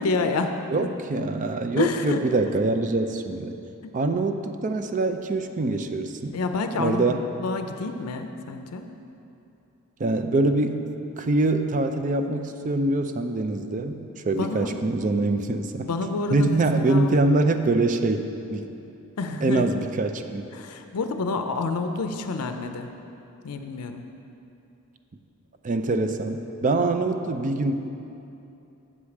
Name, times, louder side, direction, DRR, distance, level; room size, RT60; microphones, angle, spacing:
voice 1, 0.0-0.9 1.7-2.2 3.8-3.9 6.3-7.0 7.4-8.9 14.4-14.7 15.9-17.1 19.2-19.7 20.5-22.9 23.4-24.0, left 3 dB, 85° left, 7 dB, 0.5 m, -28 dB
voice 2, 0.7-3.5 3.9-6.4 6.8-7.2 10.0-10.8 11.2-15.9 16.3-18.6 19.4-20.5 25.6-27.7, right 2 dB, 35° right, 7 dB, 0.4 m, -24 dB
7.4 x 4.9 x 7.0 m, 2.8 s
head